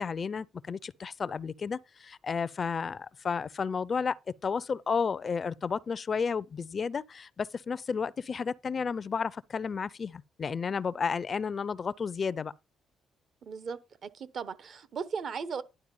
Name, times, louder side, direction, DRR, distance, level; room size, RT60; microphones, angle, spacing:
voice 1, 0.0-4.2 4.4-12.5, left 5 dB, 40° left, 0.4 m, -32 dB
voice 2, 13.4-15.6, right 6 dB, 55° right, 0.8 m, -37 dB
11.0 x 4.5 x 5.3 m
cardioid pair, 90°, 0 cm